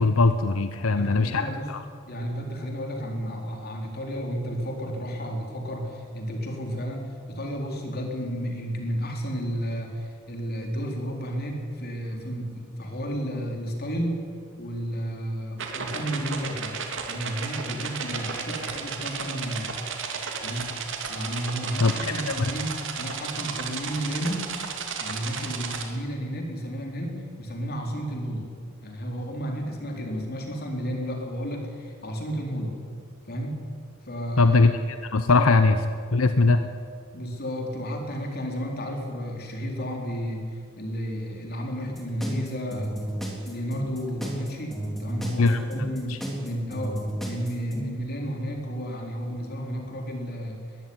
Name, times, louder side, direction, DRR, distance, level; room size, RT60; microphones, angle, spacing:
voice 1, 0.0-1.8 21.8-21.9 22.3-22.5 34.4-34.7 35.0-35.8 36.1-36.6 45.4-45.6 46.1-46.2, left 3 dB, 90° left, 9 dB, 0.9 m, -20 dB
voice 2, 0.9-1.7 2.1-16.8 17.1-19.7 20.4-20.7 21.1-24.6 25.0-28.5 28.8-32.8 33.3-33.5 34.0-34.6 35.3-35.5 37.1-40.5 40.8-42.9 43.4-50.6, equal, 50° left, 1 dB, 4.2 m, -32 dB
sound 1, 15.6-25.9, right 6 dB, 65° right, 2.7 m, -33 dB
sound 2, 41.8-47.9, right 1 dB, ahead, 3.7 m, -33 dB
21.5 x 15.0 x 9.7 m, 2.3 s
head